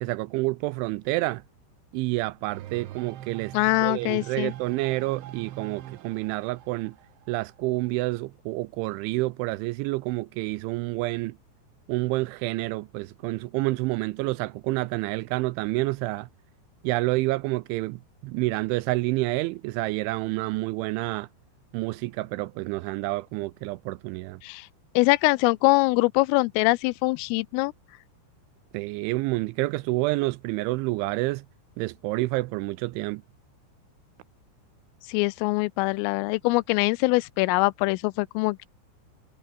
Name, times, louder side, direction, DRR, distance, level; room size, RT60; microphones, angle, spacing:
voice 1, 0.0-1.4 1.9-3.5 3.8-7.0 7.3-11.4 11.9-16.3 16.8-21.3 21.7-24.4 28.7-31.4 31.8-33.2, right 21 dB, 85° right, 2.7 m, -28 dB
sound 1, 2.5-8.2, right 13 dB, 70° right, 3.9 m, -42 dB
voice 2, 3.5-4.5 24.4-24.7 25.0-27.7 35.1-38.7, left 23 dB, 85° left, 3.1 m, -23 dB
omnidirectional pair, 5.9 m